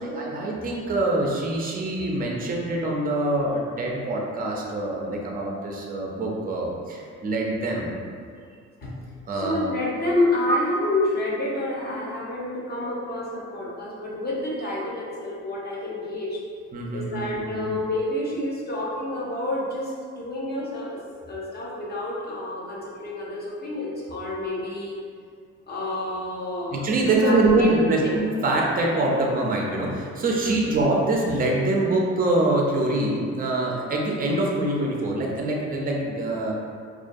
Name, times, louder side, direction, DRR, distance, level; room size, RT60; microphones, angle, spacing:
voice 1, 0.0-8.0 9.3-9.6 10.5-10.6 16.7-17.8 26.7-36.5, right 2 dB, 30° right, -2 dB, 0.5 m, -24 dB
voice 2, 9.3-16.4 16.9-21.0 21.3-25.0 25.7-28.2 30.4-30.7, left 1 dB, 35° left, -5 dB, 0.7 m, -29 dB
2.4 x 2.1 x 2.6 m, 2.2 s
cardioid pair, 90°, 30 cm